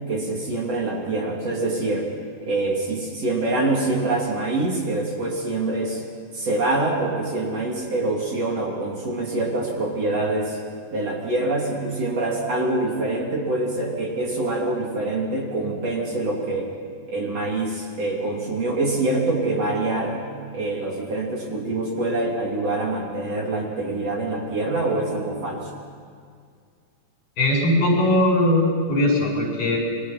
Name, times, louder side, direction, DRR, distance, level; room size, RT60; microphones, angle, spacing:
voice 1, 0.1-2.1 2.4-6.0 6.3-10.6 10.9-16.7 17.1-20.3 20.5-25.7, right 2 dB, 50° right, -1 dB, 3.8 m, -25 dB
voice 2, 27.4-29.8, left 1 dB, 70° left, -2 dB, 9.5 m, -20 dB
28.0 x 23.5 x 5.8 m, 2.1 s
omnidirectional pair, 3.9 m